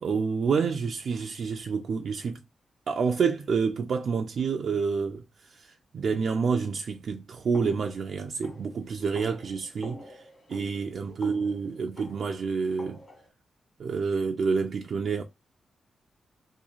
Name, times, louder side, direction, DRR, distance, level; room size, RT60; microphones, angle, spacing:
voice 1, 0.0-2.4 2.9-10.2 10.5-13.0 13.8-15.2, right 5 dB, 65° right, 0.3 m, -28 dB
sound 1, 7.5-13.3, left 1 dB, 40° left, 1.3 m, -46 dB
3.0 x 2.3 x 3.8 m
cardioid pair, 105°, 0 cm